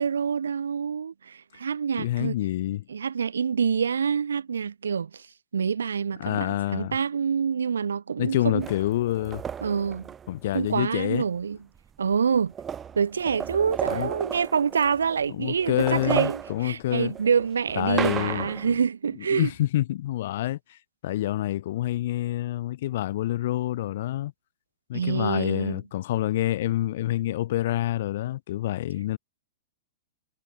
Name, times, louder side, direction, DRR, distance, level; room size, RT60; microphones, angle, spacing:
voice 1, 0.0-2.3 2.9-5.3 5.5-8.7 9.6-10.1 10.5-11.6 12.0-12.5 13.0-19.5 24.9-25.8, right 6 dB, 85° right, 0.9 m, -26 dB
voice 2, 2.0-2.8 6.2-7.0 8.2-9.4 10.3-11.2 13.9-14.1 15.3-17.1 17.8-18.7 19.3-20.8 21.0-24.3 24.9-29.2, left 14 dB, 60° left, 0.4 m, -27 dB
sound 1, 8.6-10.8 11.8-11.9 12.1-15.2 15.6-18.7, right 8 dB, 20° right, 0.7 m, -34 dB
hypercardioid pair, 120°, 0 cm